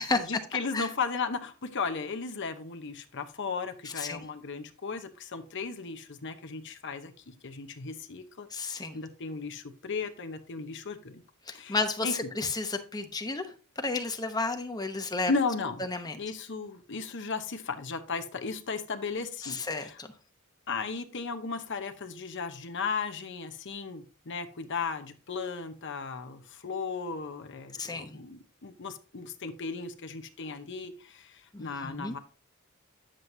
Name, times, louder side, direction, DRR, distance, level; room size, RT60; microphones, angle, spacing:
voice 1, 0.0-11.2 11.5-11.8 12.0-12.1 15.3-15.8 16.2-20.0 20.7-32.2, left 4 dB, 55° left, 8 dB, 0.9 m, -35 dB
voice 2, 4.0-4.3 8.5-9.0 11.5-15.3 15.8-16.2 19.4-20.1 27.7-28.2 31.5-32.1, left 3 dB, 20° left, 6 dB, 0.9 m, -32 dB
9.3 x 7.6 x 2.7 m, 0.36 s
head